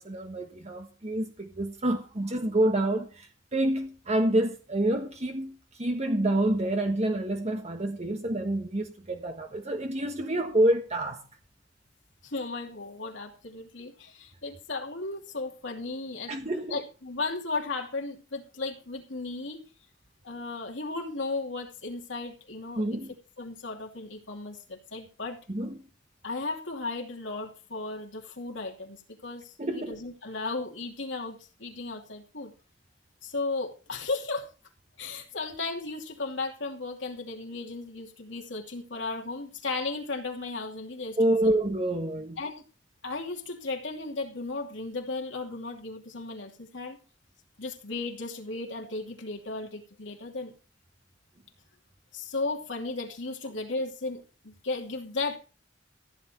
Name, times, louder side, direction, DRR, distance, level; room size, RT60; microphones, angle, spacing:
voice 1, 0.0-11.2 16.3-16.8 22.8-23.1 25.5-25.8 29.6-30.0 41.2-42.4, right 1 dB, 35° right, 1.4 m, -28 dB
voice 2, 12.2-16.3 16.7-19.6 20.2-23.0 23.4-25.4 26.2-32.5 33.2-34.5 35.0-41.4 42.4-42.6 43.0-47.0 47.6-50.5 52.1-55.4, left 3 dB, 75° left, 2.7 m, -35 dB
15.0 x 9.7 x 4.4 m
head